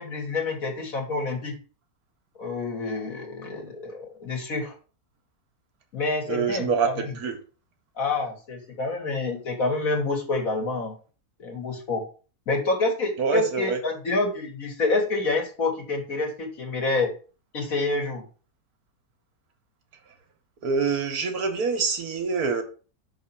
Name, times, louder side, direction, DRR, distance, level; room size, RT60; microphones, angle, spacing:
voice 1, 0.0-1.6 2.4-4.8 5.9-7.2 8.0-10.9 11.4-12.1 12.5-17.1 17.5-18.2, left 3 dB, 55° left, 2.0 m, -27 dB
voice 2, 6.3-7.4 13.2-13.8 20.6-22.6, right 5 dB, 65° right, 1.3 m, -25 dB
5.8 x 3.7 x 5.6 m
omnidirectional pair, 1.8 m